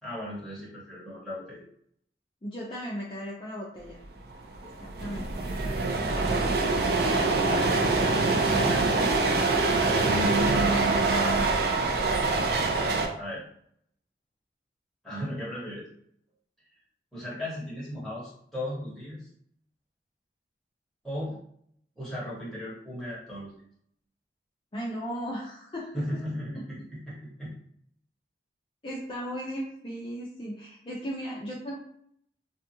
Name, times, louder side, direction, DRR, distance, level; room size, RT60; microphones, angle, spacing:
voice 1, 0.0-1.6 7.4-9.1 10.0-11.7 13.2-13.4 15.0-15.8 17.1-19.3 21.0-21.4 22.0-23.5 25.9-27.5, right 1 dB, ahead, -9 dB, 1.1 m, -35 dB
voice 2, 2.4-4.0 4.6-5.3 24.7-25.9 26.5-26.6 28.8-31.8, equal, 30° left, -6 dB, 0.4 m, -36 dB
sound 1, 4.3-4.4 4.6-13.1, right 3 dB, 60° right, 0.4 m, -25 dB
2.6 x 2.4 x 2.7 m, 0.67 s
head